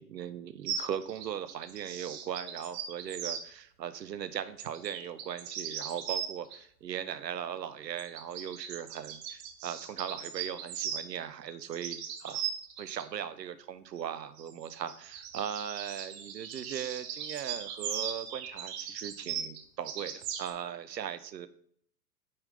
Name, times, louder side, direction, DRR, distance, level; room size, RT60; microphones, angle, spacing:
voice 1, 0.0-12.5 12.8-21.5, right 9 dB, 75° right, 13 dB, 0.9 m, -39 dB
sound 1, 0.7-3.4 4.6-6.6 7.8-11.1 11.5-13.0 14.4-20.5, right 8 dB, 40° right, 1.2 m, -38 dB
8.8 x 5.7 x 3.3 m, 0.62 s
figure-of-eight pair, 110°, 50 cm